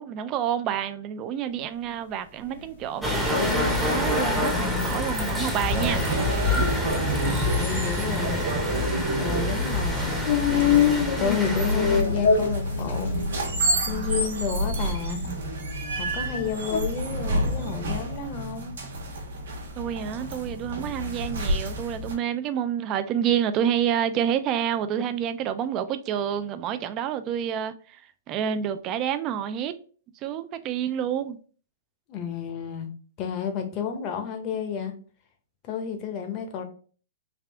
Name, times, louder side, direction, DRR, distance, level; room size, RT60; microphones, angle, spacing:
voice 1, 0.0-6.0 19.8-28.0 28.3-29.7 30.2-31.4, right 9 dB, 30° right, 0.3 m, -28 dB
sound 1, 2.5-16.8, left 7 dB, 70° left, 0.8 m, -28 dB
sound 2, 3.0-12.0, left 1 dB, 5° right, 0.7 m, -27 dB
sound 3, 5.6-22.1, right 1 dB, 85° right, 1.1 m, -29 dB
voice 2, 7.3-8.4 9.1-13.1 13.8-15.2 16.0-18.7 32.1-32.9 33.2-34.9 35.6-36.6, left 7 dB, 35° left, 0.8 m, -31 dB
3.4 x 2.4 x 3.4 m
hypercardioid pair, 145°, 0 cm